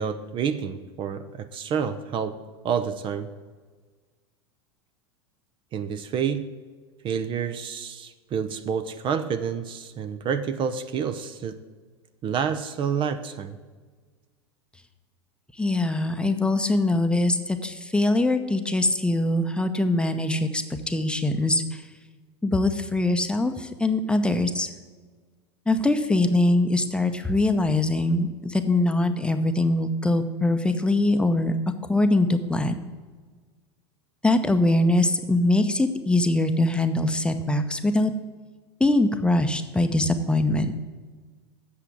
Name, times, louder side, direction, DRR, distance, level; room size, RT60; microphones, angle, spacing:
voice 1, 0.0-2.4 2.6-3.3 5.7-6.5 7.0-11.6 12.2-13.6, right 7 dB, 35° right, 10 dB, 0.7 m, -28 dB
voice 2, 15.6-21.8 22.4-24.7 25.7-31.5 31.9-32.7 34.2-38.1 38.8-40.7, left 2 dB, 5° left, 7 dB, 0.8 m, -22 dB
8.3 x 6.7 x 8.5 m, 1.5 s
hypercardioid pair, 95°, 14 cm